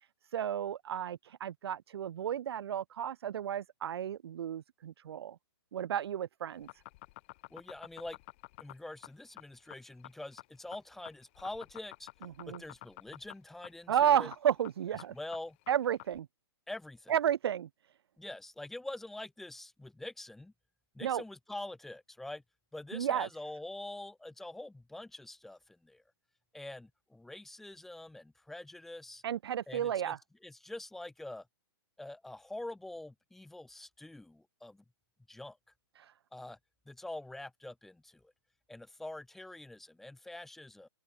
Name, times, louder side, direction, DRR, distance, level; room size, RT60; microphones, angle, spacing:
voice 1, 0.3-5.4 5.7-6.7 12.2-12.6 13.9-15.1 15.7-16.3 17.1-17.7 21.0-21.2 22.9-23.3 29.2-30.2, right 9 dB, 70° right, 0.4 m, -32 dB
sound 1, 6.5-16.2, left 21 dB, 30° left, 1.1 m, -50 dB
voice 2, 7.5-8.2 8.6-12.1 12.5-14.3 15.1-15.6 16.7-17.1 18.2-20.5 20.9-22.4 22.7-26.0 26.5-29.2 29.7-30.1 30.4-31.5 32.0-34.8 35.3-35.6 36.3-36.6 36.9-38.3 38.7-40.9, left 2 dB, ahead, 0.7 m, -45 dB
open air
hypercardioid pair, 170°, 14 cm